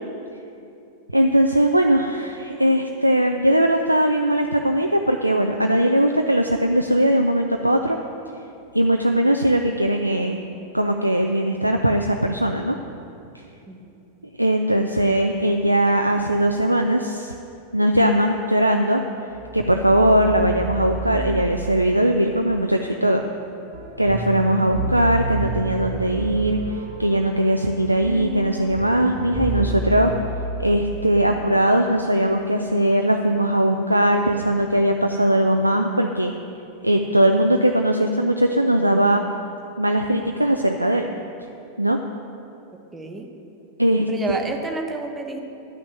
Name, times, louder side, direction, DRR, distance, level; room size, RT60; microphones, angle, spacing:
voice 1, 1.1-8.0 8.7-10.4 10.7-12.8 14.4-17.3 17.7-19.0 19.5-23.2 24.0-26.6 27.0-30.1 30.6-36.3 36.8-39.2 39.8-41.1 41.8-42.0 43.8-44.4, right 1 dB, 85° right, 4 dB, 0.4 m, -20 dB
sound 1, 19.3-31.4, right 3 dB, 55° right, 1.3 m, -31 dB
voice 2, 42.9-43.3 44.1-45.4, right 3 dB, 15° right, 3 dB, 1.1 m, -30 dB
11.0 x 6.0 x 7.6 m, 2.7 s
figure-of-eight pair, 90°, 0 cm